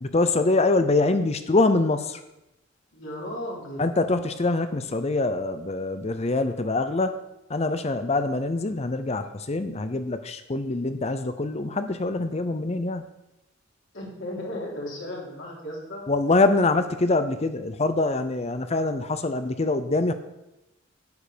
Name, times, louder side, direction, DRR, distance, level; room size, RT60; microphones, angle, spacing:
voice 1, 0.0-2.2 3.8-7.2 7.5-13.0 16.1-20.1, left 2 dB, 30° left, 10 dB, 0.6 m, -24 dB
voice 2, 2.9-3.9 13.9-16.0, left 1 dB, 60° left, -4 dB, 3.4 m, -35 dB
9.4 x 9.0 x 5.1 m, 0.91 s
head